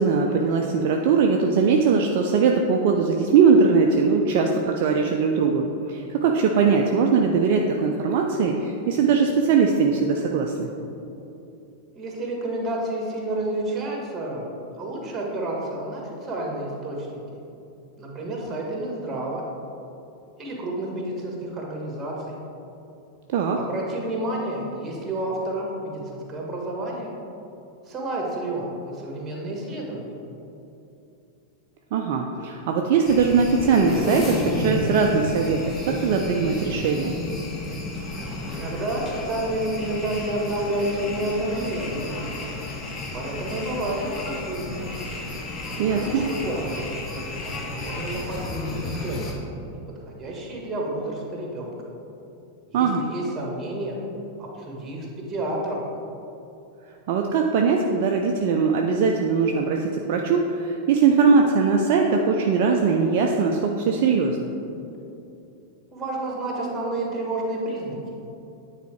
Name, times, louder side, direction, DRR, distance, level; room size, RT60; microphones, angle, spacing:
voice 1, 0.0-10.7 23.3-23.6 31.9-37.2 45.8-46.2 52.7-53.0 57.1-64.5, right 5 dB, 50° right, 2 dB, 0.5 m, -21 dB
voice 2, 12.0-14.5 14.8-17.2 18.0-19.4 20.4-22.4 23.5-27.1 27.8-30.1 38.5-42.1 43.1-44.8 45.9-47.1 47.4-49.4 50.1-51.7 52.7-54.0 54.4-55.8 65.9-68.0, right 1 dB, 20° right, -1 dB, 1.6 m, -30 dB
sound 1, 33.1-49.3, left 2 dB, 25° left, 1.1 m, -32 dB
9.3 x 4.0 x 4.6 m, 2.8 s
figure-of-eight pair, 90°, 0 cm